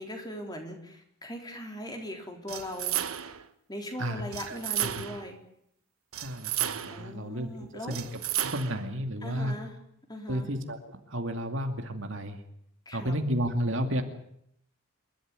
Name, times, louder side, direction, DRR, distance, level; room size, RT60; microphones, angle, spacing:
voice 1, 0.0-3.0 3.7-5.4 6.9-8.0 9.2-9.8 10.1-10.5 12.9-13.2, equal, 20° left, 3 dB, 3.9 m, -39 dB
sound 1, 2.5-3.5 4.3-5.3 6.1-7.1 7.9-8.9, right 12 dB, 85° right, 1.4 m, -33 dB
voice 2, 4.5-4.9 6.2-7.5 7.9-8.0 8.4-9.6 10.3-10.8 11.1-12.4 12.9-14.0, equal, 60° right, 6 dB, 2.4 m, -31 dB
28.0 x 13.0 x 9.6 m, 0.75 s
head